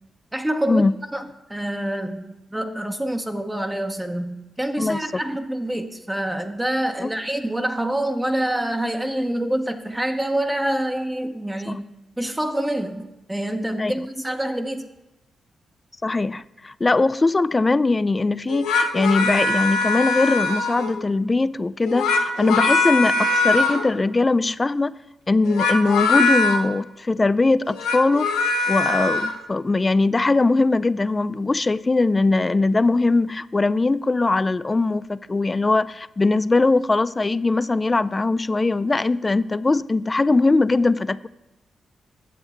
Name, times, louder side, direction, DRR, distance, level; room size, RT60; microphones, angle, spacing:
voice 1, 0.3-0.8 1.1-11.9 12.2-14.9, right 1 dB, 15° right, 6 dB, 0.7 m, -26 dB
voice 2, 16.0-25.0 25.3-28.3 28.7-41.3, left 3 dB, 30° left, 17 dB, 0.3 m, -21 dB
sound 1, 18.5-21.0 21.8-23.9 25.4-26.6 27.6-29.3, left 3 dB, 85° left, 0.8 m, -22 dB
8.4 x 7.7 x 4.3 m, 0.99 s
hypercardioid pair, 40°, 0 cm